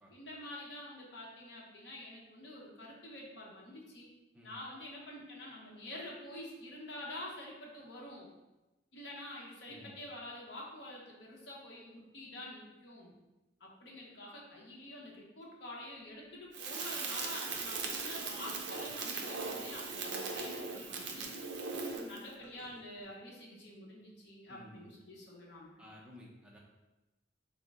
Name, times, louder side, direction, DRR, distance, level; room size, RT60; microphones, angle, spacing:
voice 1, 0.1-4.1 4.4-8.3 8.9-13.1 13.6-21.3 21.9-25.8, left 1 dB, 75° left, -3 dB, 0.8 m, -47 dB
Crackle, 16.5-22.2, right 4 dB, 70° right, 0.4 m, -39 dB
Gurgling / Car passing by / Sink (filling or washing), 17.4-23.1, equal, 35° left, 1.2 m, -57 dB
voice 2, 24.5-24.9 25.8-26.6, left 1 dB, 5° right, -3 dB, 0.5 m, -54 dB
3.6 x 2.0 x 3.5 m, 1.1 s
head